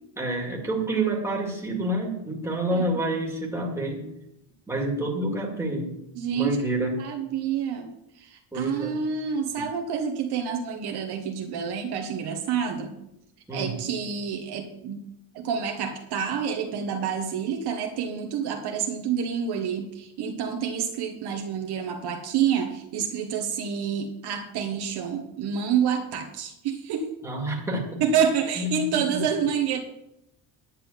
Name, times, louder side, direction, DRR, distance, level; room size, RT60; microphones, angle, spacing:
voice 1, 0.2-4.0 4.7-5.9 6.3-7.1 8.5-9.0 9.6-9.7 13.5-13.7 27.2-28.0 28.6-29.2, right 1 dB, 5° right, -1 dB, 2.1 m, -28 dB
voice 2, 6.1-6.6 7.0-7.9 8.2-12.9 13.5-15.1 15.3-27.1 28.0-29.8, right 7 dB, 55° right, 3 dB, 1.3 m, -28 dB
10.5 x 6.0 x 8.4 m, 0.83 s
cardioid pair, 175°, 48 cm